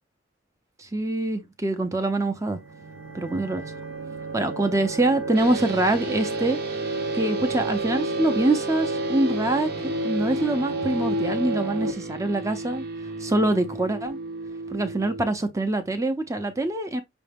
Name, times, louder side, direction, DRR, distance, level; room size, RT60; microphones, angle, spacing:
voice 1, 0.8-2.6 3.1-3.6 4.3-6.6 7.1-9.7 10.0-12.9 13.2-14.2 14.7-17.0, right 2 dB, 15° right, 0.7 m, -24 dB
sound 1, 2.3-11.9, right 1 dB, 75° right, 0.9 m, -30 dB
sound 2, 5.3-15.3, right 3 dB, 50° right, 0.9 m, -36 dB
6.1 x 2.3 x 3.4 m
head